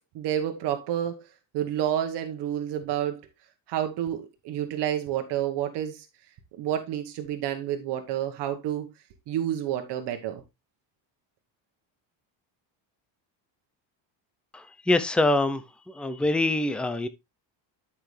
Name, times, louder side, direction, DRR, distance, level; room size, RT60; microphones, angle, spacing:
voice 1, 0.1-1.3 1.5-3.2 3.7-6.1 6.6-8.9 9.3-10.4, right 11 dB, 65° right, 1.3 m, -29 dB
voice 2, 14.9-15.6 16.0-17.1, left 2 dB, ahead, 0.5 m, -24 dB
10.5 x 5.9 x 3.2 m
cardioid pair, 150°, 44 cm